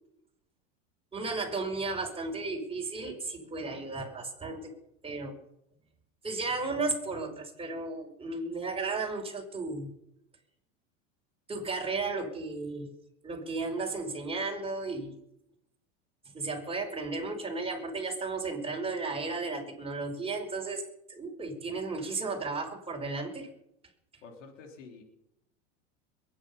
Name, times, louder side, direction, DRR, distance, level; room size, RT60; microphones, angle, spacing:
voice 1, 1.1-4.7 5.0-5.4 6.2-9.9 11.5-12.9 13.2-15.1 16.3-20.8 21.1-23.5, right 3 dB, 15° right, 2 dB, 4.9 m, -34 dB
voice 2, 24.2-25.0, left 4 dB, 85° left, 2 dB, 3.8 m, -48 dB
22.5 x 10.0 x 5.6 m, 0.80 s
supercardioid pair, 110°, 36 cm